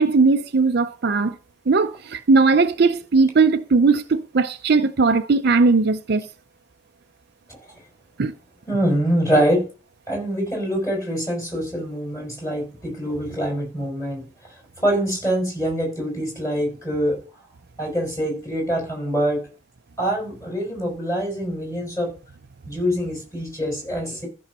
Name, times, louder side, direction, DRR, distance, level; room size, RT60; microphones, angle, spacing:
voice 1, 0.0-1.3 1.7-6.3 8.2-8.3, right 4 dB, 55° right, 0.5 m, -18 dB
voice 2, 8.7-9.7 10.1-14.2 14.8-17.2 17.8-19.4 20.0-22.1 22.7-24.3, equal, 15° left, 5.4 m, -24 dB
14.5 x 6.3 x 4.2 m
head